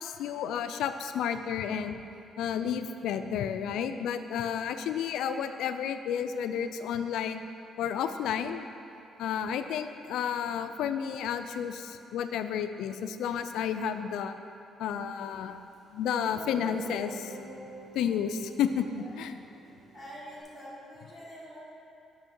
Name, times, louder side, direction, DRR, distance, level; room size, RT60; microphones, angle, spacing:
voice 1, 0.0-2.0 2.4-7.4 7.8-8.6 9.2-14.4 14.8-15.6 15.9-17.3 17.9-19.4, left 8 dB, 85° left, 9 dB, 0.3 m, -31 dB
Guitar, 15.7-15.8 16.3-20.4, right 1 dB, 65° right, 1.5 m, -45 dB
voice 2, 19.9-21.6, equal, 5° left, -8 dB, 1.2 m, -45 dB
6.3 x 5.4 x 4.4 m, 2.7 s
cardioid pair, 170°, 0 cm